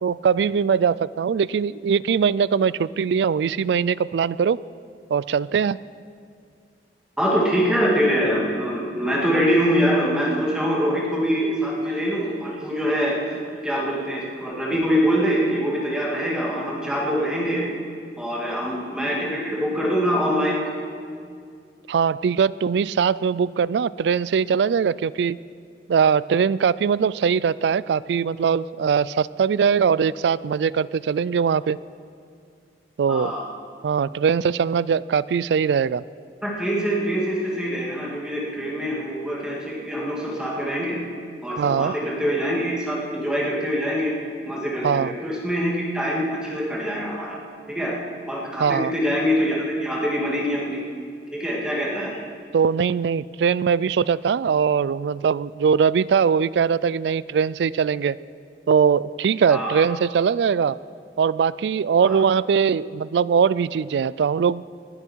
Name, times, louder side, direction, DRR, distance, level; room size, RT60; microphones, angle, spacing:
voice 1, 0.0-4.6 5.1-5.8 21.9-25.4 25.9-31.8 33.0-33.3 33.8-36.0 41.6-41.9 44.8-45.1 48.6-48.9 52.5-58.2 58.7-60.8 61.2-64.6, right 6 dB, 70° right, 20 dB, 0.3 m, -21 dB
voice 2, 7.2-17.6 18.2-20.6 33.1-33.4 36.4-41.0 41.4-44.1 44.5-47.4 47.7-47.9 48.3-50.8 51.3-52.2 59.5-59.8 62.0-62.2, equal, 5° right, -5 dB, 2.3 m, -24 dB
20.0 x 12.0 x 4.6 m, 2.3 s
head